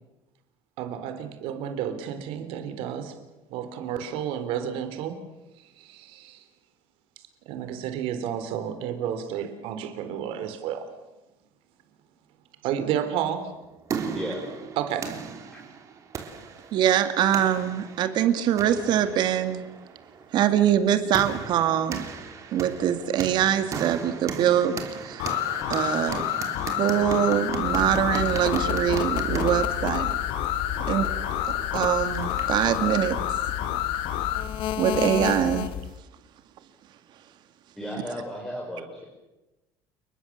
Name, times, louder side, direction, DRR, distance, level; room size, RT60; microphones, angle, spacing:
voice 1, 0.8-3.2 3.5-5.2 5.8-6.4 7.5-10.9 12.6-13.5 14.8-15.1, right 9 dB, 70° right, 9 dB, 3.5 m, -31 dB
sound 1, 13.5-32.7, right 6 dB, 35° right, 3.2 m, -37 dB
voice 2, 16.7-19.7 20.3-22.0 22.5-25.3 25.7-26.2 26.8-30.1 30.9-31.1 31.5-33.2 34.8-35.7, right 10 dB, 50° right, 10 dB, 2.2 m, -23 dB
sound 2, 25.2-34.5, left 12 dB, 80° left, 2.5 m, -29 dB
sound 3, 27.6-36.0, left 11 dB, 55° left, 1.2 m, -33 dB
voice 3, 37.8-39.0, equal, 5° left, -3 dB, 4.7 m, -35 dB
30.0 x 20.5 x 7.4 m, 1.0 s
cardioid pair, 165°, 10 cm